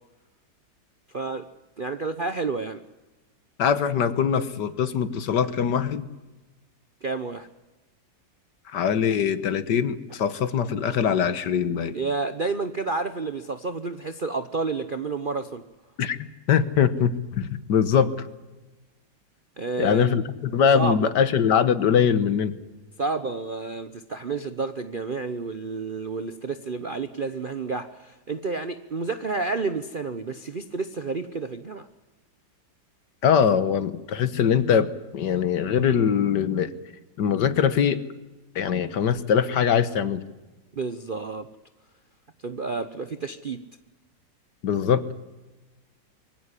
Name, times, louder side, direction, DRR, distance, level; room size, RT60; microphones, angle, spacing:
voice 1, 1.1-1.5 1.8-2.8 7.0-7.5 11.9-15.6 19.6-20.2 20.7-21.1 23.0-31.9 40.7-41.5 42.4-43.6, right 4 dB, 45° right, 10 dB, 0.7 m, -30 dB
voice 2, 3.6-6.1 8.7-11.9 16.0-18.1 19.8-22.6 33.2-36.7 37.2-38.0 38.5-40.2 44.6-45.1, left 7 dB, 70° left, 13 dB, 1.7 m, -22 dB
23.5 x 15.5 x 9.8 m, 1.2 s
omnidirectional pair, 2.0 m